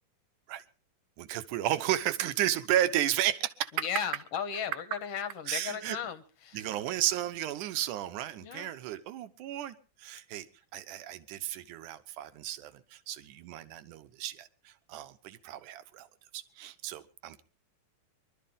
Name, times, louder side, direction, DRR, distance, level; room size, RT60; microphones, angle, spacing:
voice 1, 1.2-3.7 5.5-6.0 6.5-10.5 10.7-16.1 16.3-17.4, right 12 dB, 75° right, 12 dB, 2.5 m, -33 dB
voice 2, 3.7-6.6 8.4-8.7, left 7 dB, 55° left, 10 dB, 2.0 m, -36 dB
24.5 x 12.5 x 3.7 m, 0.36 s
omnidirectional pair, 3.7 m